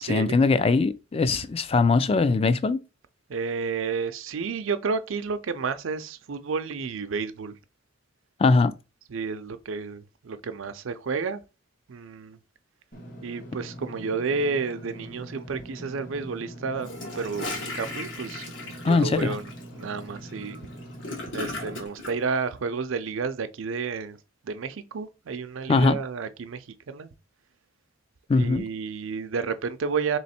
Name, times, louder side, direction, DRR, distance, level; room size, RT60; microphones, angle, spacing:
voice 1, 0.0-2.8 8.4-8.7 18.8-19.4 25.7-26.0 28.3-28.6, left 3 dB, 30° left, 0.3 m, -21 dB
voice 2, 3.3-7.5 9.1-11.4 11.9-12.4 13.2-16.9 17.2-20.6 21.3-24.2 24.4-27.1 28.3-30.2, right 5 dB, 80° right, 0.5 m, -31 dB
Engine / Mechanisms, 12.9-21.9, right 1 dB, 45° left, 1.2 m, -43 dB
Gurgling / Toilet flush, 16.8-22.1, left 2 dB, 65° left, 1.3 m, -37 dB
3.4 x 3.1 x 4.2 m
head